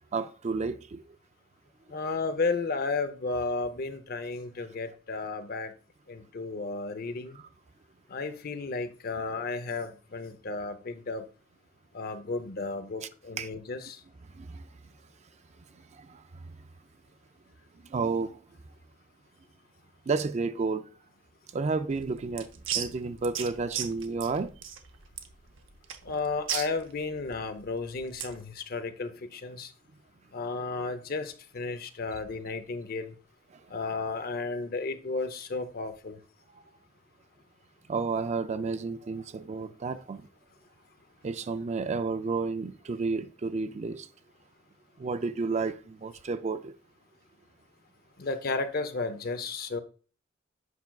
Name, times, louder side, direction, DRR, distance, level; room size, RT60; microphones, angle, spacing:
voice 1, 0.1-1.0 13.4-13.5 14.4-14.7 15.8-16.2 17.8-18.4 20.1-20.9 21.5-22.5 22.7-24.5 36.5-36.6 37.9-40.3 41.2-44.1 45.0-46.7, right 4 dB, 35° right, 0.4 m, -31 dB
voice 2, 1.9-5.7 6.1-7.4 8.1-11.2 11.9-14.0 26.0-29.7 30.3-33.1 33.7-36.2 48.2-49.8, left 3 dB, 50° left, 0.6 m, -33 dB
sound 1, 21.9-28.4, right 9 dB, 85° right, 0.8 m, -37 dB
8.1 x 5.7 x 2.3 m
head